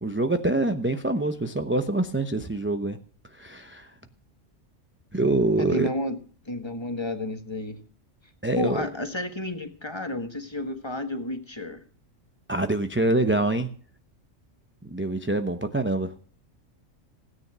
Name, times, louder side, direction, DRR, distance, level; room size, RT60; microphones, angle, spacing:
voice 1, 0.0-3.0 3.4-3.9 5.1-5.9 8.4-8.9 12.5-13.7 14.8-16.1, right 2 dB, 10° right, 7 dB, 0.8 m, -25 dB
voice 2, 5.6-6.2 6.4-7.8 8.6-11.8, left 1 dB, 20° left, 7 dB, 1.6 m, -31 dB
17.0 x 9.6 x 6.2 m, 0.44 s
omnidirectional pair, 1.4 m